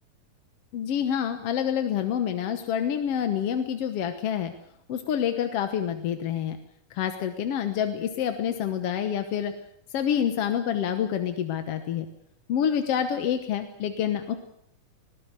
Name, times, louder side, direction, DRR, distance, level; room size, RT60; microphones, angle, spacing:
voice 1, 0.7-4.5 4.9-6.6 6.9-9.5 9.9-12.1 12.5-14.4, left 9 dB, 60° left, 7 dB, 1.7 m, -27 dB
20.5 x 17.0 x 8.0 m, 0.72 s
omnidirectional pair, 3.9 m